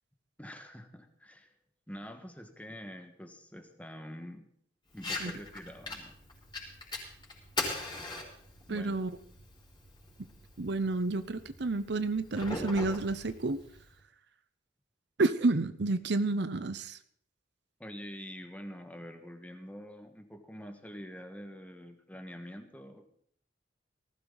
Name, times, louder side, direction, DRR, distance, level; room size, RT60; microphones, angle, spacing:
voice 1, 0.4-1.5 1.9-4.5 4.9-6.1 8.7-8.9 17.8-23.1, equal, 10° left, 6 dB, 1.6 m, -46 dB
Fire, 4.9-13.9, left 2 dB, 25° left, 4.8 m, -41 dB
voice 2, 8.7-9.1 10.6-13.6 15.2-17.0, right 3 dB, 65° right, 12 dB, 0.8 m, -30 dB
19.0 x 15.5 x 4.0 m, 0.62 s
head